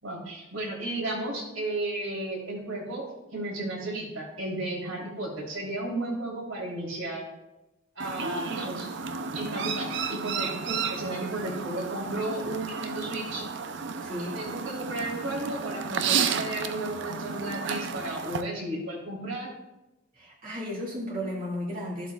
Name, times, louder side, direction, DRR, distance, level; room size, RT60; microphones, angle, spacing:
voice 1, 0.0-3.0 3.3-7.3 7.9-8.9 9.3-13.4 14.3-19.5, right 1 dB, 85° right, -3 dB, 3.3 m, -33 dB
Chirp tweet, 8.0-18.4, right 6 dB, 65° right, 0.5 m, -32 dB
voice 2, 14.0-14.4 20.2-22.1, equal, 45° right, -5 dB, 2.0 m, -34 dB
13.5 x 7.7 x 2.3 m, 0.99 s
head